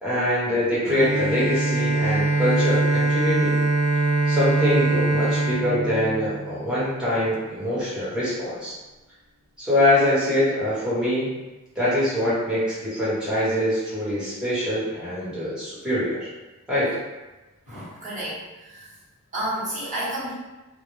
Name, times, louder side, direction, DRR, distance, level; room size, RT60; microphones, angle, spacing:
voice 1, 0.0-3.6 4.3-8.8 9.6-11.3 11.8-16.3 16.7-16.9, left 1 dB, 5° right, -11 dB, 1.0 m, -24 dB
Bowed string instrument, 0.9-6.9, right 2 dB, 70° right, 0.4 m, -23 dB
voice 2, 17.7-18.4 18.6-18.8 19.3-20.3, right 1 dB, 35° right, -9 dB, 1.0 m, -30 dB
2.1 x 2.1 x 3.1 m, 1.1 s
head